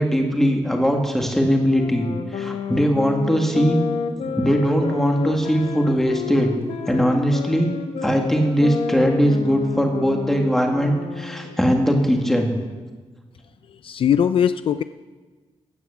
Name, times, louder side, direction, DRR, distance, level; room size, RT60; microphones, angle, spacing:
voice 1, 0.0-3.8 4.4-6.5 6.9-7.7 8.0-12.6, equal, 5° left, 2 dB, 1.8 m, -20 dB
sound 1, 1.7-11.8, left 6 dB, 75° left, 1.1 m, -30 dB
voice 2, 13.7-14.8, left 8 dB, 55° left, 12 dB, 0.4 m, -20 dB
16.5 x 9.4 x 7.1 m, 1.3 s
wide cardioid pair, 165°, 11 cm